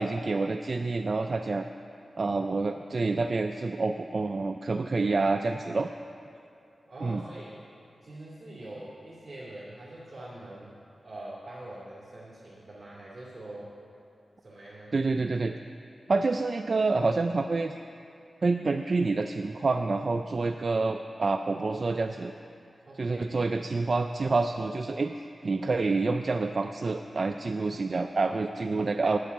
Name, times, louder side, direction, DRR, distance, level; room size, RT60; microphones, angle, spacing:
voice 1, 0.0-1.7 2.2-5.9 7.0-7.2 14.9-15.6 16.1-17.7 18.4-22.3 23.0-25.1 25.4-29.2, right 3 dB, 45° right, 6 dB, 0.3 m, -27 dB
voice 2, 6.8-7.6 8.0-10.7 11.0-13.7 14.4-14.9 22.9-23.4, right 1 dB, 30° right, -9 dB, 2.4 m, -44 dB
9.3 x 8.2 x 7.1 m, 2.7 s
wide cardioid pair, 125°, 0 cm